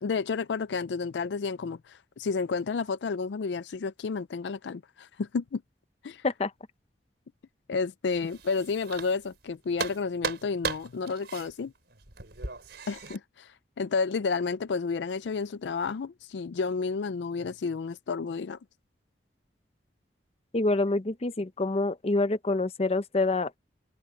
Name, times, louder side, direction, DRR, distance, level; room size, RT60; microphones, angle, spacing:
voice 1, 0.0-5.6 6.0-6.3 7.7-11.7 12.9-18.6, left 4 dB, 75° left, 0.4 m, -31 dB
sound 1, 8.1-9.4 9.8-13.2, right 4 dB, 70° right, 5.6 m, -36 dB
voice 2, 20.5-23.5, left 2 dB, 35° left, 0.8 m, -26 dB
head